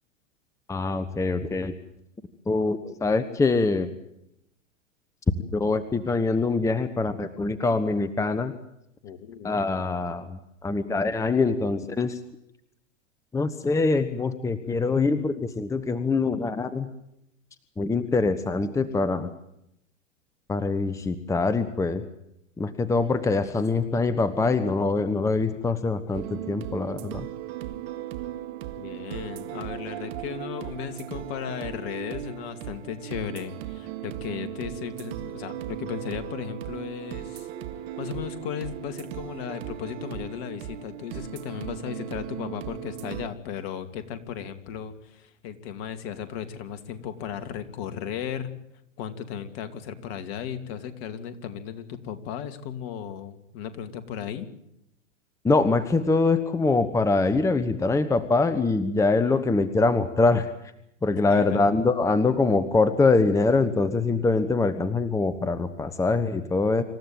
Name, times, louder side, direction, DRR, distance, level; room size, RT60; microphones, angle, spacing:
voice 1, 0.7-1.7 2.5-3.9 5.5-8.5 9.4-12.2 13.3-16.9 17.8-19.3 20.5-22.0 22.6-27.3 55.4-60.5 61.0-66.8, left 3 dB, 10° left, 13 dB, 1.1 m, -24 dB
voice 2, 9.0-9.7 28.8-37.5 38.0-48.5 49.0-54.5 59.0-59.4 61.1-61.6, left 8 dB, 45° left, 9 dB, 2.7 m, -36 dB
sound 1, 26.1-43.3, right 12 dB, 55° right, 1.9 m, -37 dB
26.5 x 15.0 x 9.1 m, 0.80 s
hypercardioid pair, 110°, 38 cm